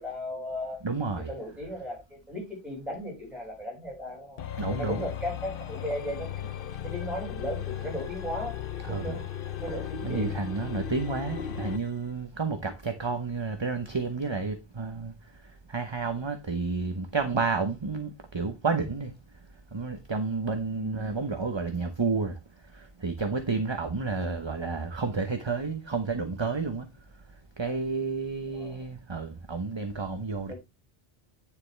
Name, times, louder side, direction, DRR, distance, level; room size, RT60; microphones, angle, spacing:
voice 1, 0.0-0.8 1.2-4.4 4.7-6.5 6.8-8.6 8.8-9.2 9.6-10.3 20.7-21.0 28.5-28.9 30.5-30.6, equal, ahead, 5.9 m, -36 dB
voice 2, 0.8-1.3 4.6-5.1 8.8-9.2 10.0-15.1 15.7-19.1 19.7-22.3 22.7-26.9 27.6-30.5, right 4 dB, 30° right, 0.9 m, -30 dB
sound 1, 4.4-11.9, left 10 dB, 60° left, 0.9 m, -36 dB
9.4 x 7.0 x 3.3 m
omnidirectional pair, 1.0 m